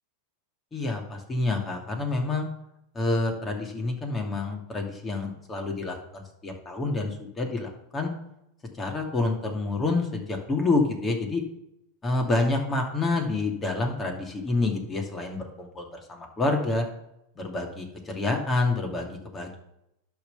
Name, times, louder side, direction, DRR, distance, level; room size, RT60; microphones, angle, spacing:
voice 1, 0.7-2.5 2.9-8.1 8.8-11.4 12.0-16.8 17.4-19.6, left 2 dB, 20° left, 1 dB, 2.5 m, -28 dB
11.5 x 4.0 x 6.9 m, 0.82 s
hypercardioid pair, 95°, 0 cm